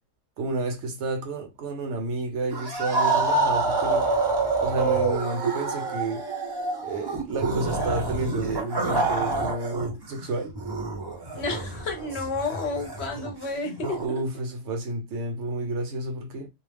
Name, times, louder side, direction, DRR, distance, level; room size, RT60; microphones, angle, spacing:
voice 1, 0.4-4.1 4.6-6.2 6.8-10.5 14.0-16.5, right 2 dB, 65° right, 0.8 m, -31 dB
sound 1, 2.5-9.9 10.2-14.1, right 3 dB, 30° right, 0.5 m, -27 dB
voice 2, 11.3-14.2, left 3 dB, 60° left, 0.9 m, -31 dB
2.4 x 2.0 x 3.3 m
omnidirectional pair, 1.4 m